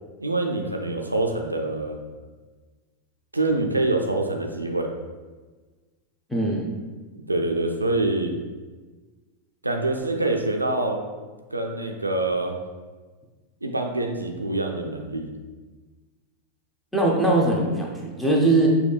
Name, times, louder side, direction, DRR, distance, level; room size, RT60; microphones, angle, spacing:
voice 1, 0.2-2.0 3.3-4.9 7.3-8.4 9.6-11.0 11.5-12.6 13.6-15.3, right 2 dB, 85° right, 3 dB, 0.4 m, -25 dB
voice 2, 6.3-6.7 16.9-18.7, right 2 dB, 5° left, -2 dB, 0.8 m, -21 dB
6.4 x 2.2 x 3.4 m, 1.3 s
figure-of-eight pair, 90°, 0 cm